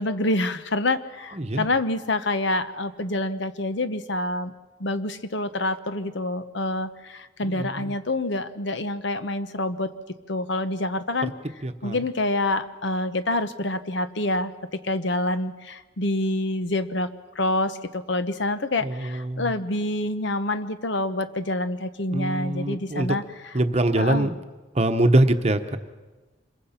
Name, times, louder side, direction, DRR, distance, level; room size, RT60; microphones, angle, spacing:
voice 1, 0.0-4.5 4.8-9.9 10.3-11.3 11.8-14.5 14.8-17.1 17.3-23.2 24.0-24.3, left 2 dB, 60° left, 11 dB, 1.0 m, -27 dB
voice 2, 1.3-1.7 7.4-8.0 11.2-11.3 11.6-12.1 18.8-19.5 22.1-23.2 23.5-24.4 24.7-25.8, right 1 dB, 30° right, 8 dB, 1.0 m, -24 dB
26.0 x 22.5 x 5.8 m, 1.2 s
head